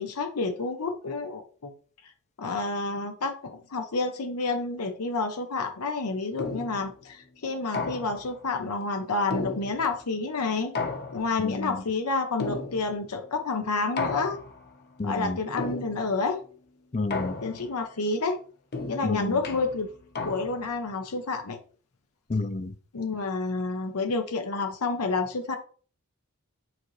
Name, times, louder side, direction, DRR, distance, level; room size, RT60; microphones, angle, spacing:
voice 1, 0.0-1.7 2.4-10.7 11.1-14.4 15.0-16.4 17.4-18.4 18.9-19.9 20.2-21.6 22.9-25.6, left 3 dB, 90° left, 0.8 m, -29 dB
sound 1, 6.4-6.9 7.7-8.4 9.3-10.1 10.7-11.5 12.4-13.1 14.0-14.7 15.6-16.2 17.1-17.8 18.7-20.8, left 4 dB, 45° left, 0.9 m, -34 dB
voice 2, 11.4-11.8 15.0-15.4 16.9-17.3 19.0-19.4 22.3-22.7, left 2 dB, 30° left, 0.5 m, -29 dB
8.9 x 3.9 x 3.2 m
head